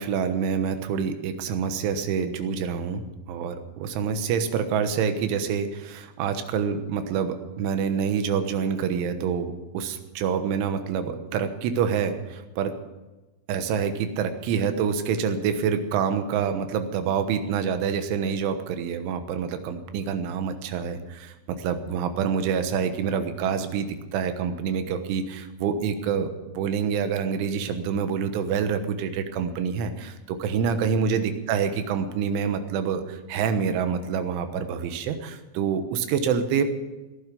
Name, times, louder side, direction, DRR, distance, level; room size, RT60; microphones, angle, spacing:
voice 1, 0.0-12.7 13.5-36.6, right 7 dB, 80° right, 8 dB, 3.6 m, -27 dB
18.5 x 11.0 x 6.9 m, 1.1 s
omnidirectional pair, 5.6 m